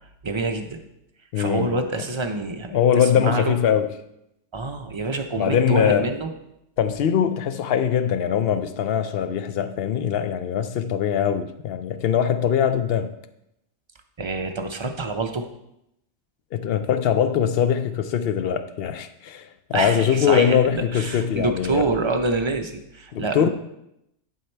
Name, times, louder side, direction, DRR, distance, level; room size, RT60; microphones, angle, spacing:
voice 1, 0.2-0.8 1.4-3.6 4.5-6.3 14.2-15.5 19.7-23.5, right 3 dB, 40° right, 0.4 m, -27 dB
voice 2, 1.3-1.8 2.7-3.9 5.4-6.1 6.8-13.1 16.5-21.8 23.1-23.5, left 8 dB, 60° left, 0.7 m, -22 dB
11.0 x 4.7 x 4.4 m
omnidirectional pair, 1.3 m